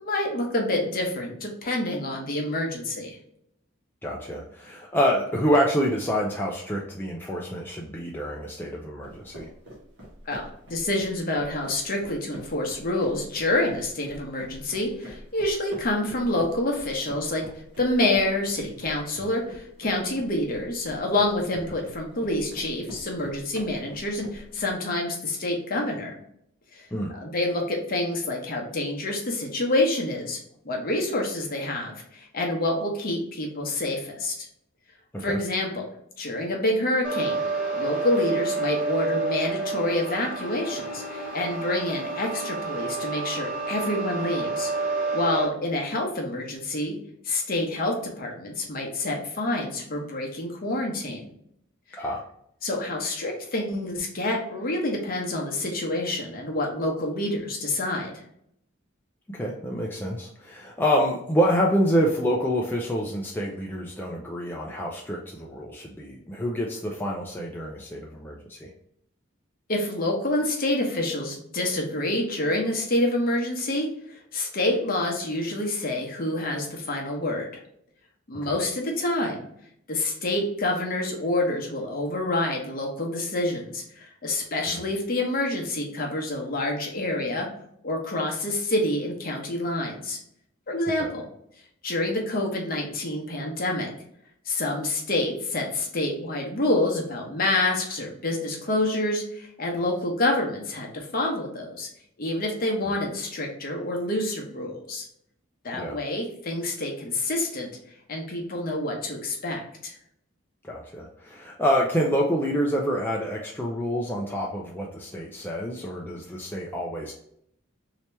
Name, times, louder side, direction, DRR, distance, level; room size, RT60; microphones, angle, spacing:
voice 1, 0.0-3.2 10.3-17.4 17.8-26.1 26.7-30.4 30.6-34.3 35.2-35.8 36.2-37.4 37.7-47.0 47.2-51.3 52.6-58.1 69.7-77.5 78.3-79.5 79.9-87.5 87.8-90.2 90.7-91.2 91.8-93.9 94.5-101.9 102.2-105.0 105.6-107.7 108.1-109.9, left 1 dB, 45° left, 0 dB, 0.9 m, -27 dB
voice 2, 4.0-9.5 26.9-27.1 35.3-35.4 52.0-52.2 59.3-68.7 78.3-78.5 84.7-84.8 91.0-91.1 105.8-106.0 110.6-117.1, equal, 10° left, -2 dB, 0.4 m, -27 dB
sound 1, 9.0-24.7, equal, 60° right, 1.3 m, -45 dB
sound 2, 37.0-45.4, right 3 dB, 5° right, 1.0 m, -29 dB
3.3 x 2.9 x 3.0 m, 0.71 s
head